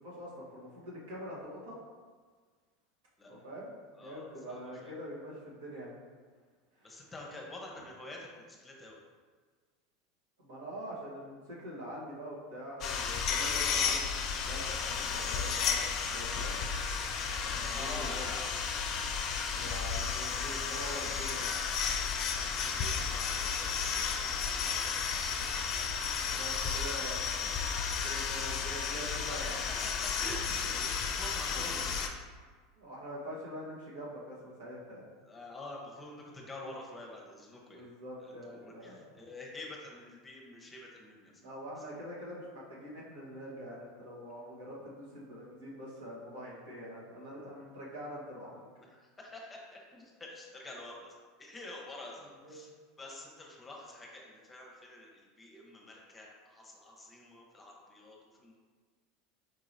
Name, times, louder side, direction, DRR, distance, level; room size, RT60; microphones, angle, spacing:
voice 1, 0.0-1.8 3.3-3.7 4.0-5.9 6.8-7.1 10.4-16.6 17.4-18.2 19.5-21.7 26.2-27.6 28.0-29.6 31.5-31.6 32.8-35.1 37.7-39.0 41.4-48.6 52.4-52.6, equal, 75° right, -5 dB, 1.3 m, -44 dB
voice 2, 3.9-4.9 6.8-9.0 17.6-18.4 22.4-25.0 29.3-31.7 35.2-37.9 38.2-41.4 48.8-52.7 53.0-58.6, left 2 dB, 20° left, -2 dB, 0.8 m, -47 dB
sound 1, 12.8-32.1, left 6 dB, 50° left, 0.4 m, -33 dB
4.7 x 2.9 x 2.6 m, 1.5 s
hypercardioid pair, 90°, 0 cm